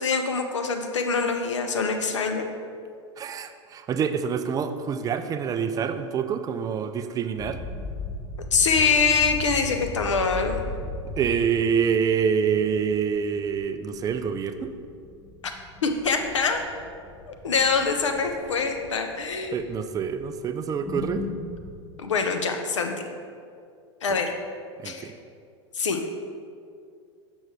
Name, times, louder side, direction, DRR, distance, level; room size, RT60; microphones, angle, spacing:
voice 1, 0.0-2.5 8.5-10.6 15.8-16.6 17.3-19.7 22.0-22.9 24.0-24.3 24.8-25.1 25.7-26.0, left 5 dB, 80° left, 5 dB, 0.6 m, -24 dB
voice 2, 3.2-7.6 11.2-14.7 19.5-21.3 24.1-24.2 24.8-25.1, right 7 dB, 25° right, 9 dB, 0.4 m, -26 dB
sound 1, 7.4-21.8, left 2 dB, 15° left, 0.8 m, -38 dB
6.3 x 6.2 x 3.2 m, 2.3 s
figure-of-eight pair, 85°, 15 cm